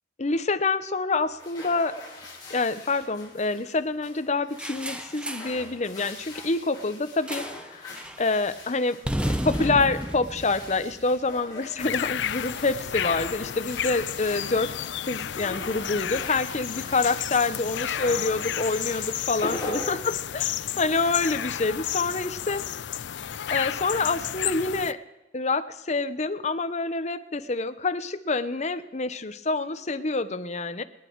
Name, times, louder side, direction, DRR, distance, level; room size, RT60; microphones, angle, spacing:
voice 1, 0.2-2.0 2.5-9.0 9.3-14.8 15.1-20.5 20.8-22.6 23.5-25.0 25.3-30.8, left 3 dB, 40° left, 11 dB, 0.9 m, -27 dB
sound 1, 1.2-20.8, left 2 dB, 25° left, 6.3 m, -42 dB
sound 2, 4.6-5.6 7.3-7.7 8.0-8.2 9.0-11.4, equal, 5° right, 0.9 m, -32 dB
sound 3, 11.8-24.9, left 10 dB, 80° left, 0.5 m, -32 dB
28.5 x 10.0 x 4.7 m, 0.99 s
head